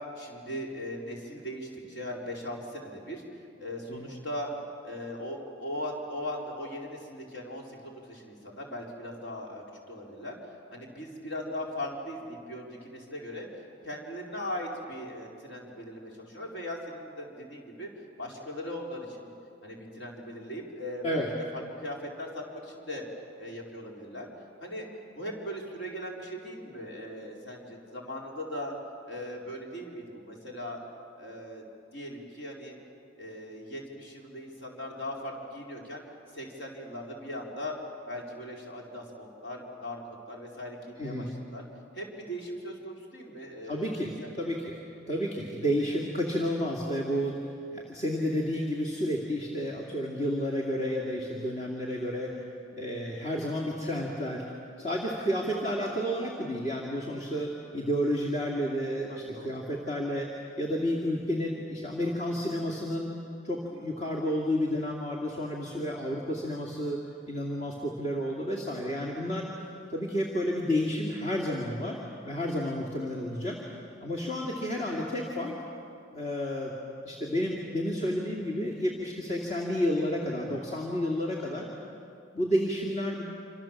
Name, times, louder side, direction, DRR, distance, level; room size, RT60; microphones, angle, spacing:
voice 1, 0.2-4.5 4.8-10.3 10.7-17.9 18.2-19.3 19.6-21.2 21.5-23.1 23.4-24.3 24.6-24.9 25.1-28.8 29.1-30.8 31.2-31.6 31.9-32.8 33.2-36.0 36.3-37.8 38.1-40.0 40.3-41.6 41.9-44.6 47.8-47.9 59.1-59.7 67.7-67.9, left 1 dB, 60° left, -1 dB, 4.6 m, -39 dB
voice 2, 41.0-41.3 43.6-44.7 45.1-52.4 52.8-54.5 54.8-60.3 60.6-63.1 63.4-67.0 67.3-69.5 69.9-73.6 74.0-75.5 76.1-76.7 77.0-81.7 82.3-83.2, equal, 35° left, -2 dB, 2.5 m, -31 dB
27.0 x 27.0 x 7.5 m, 2.6 s
head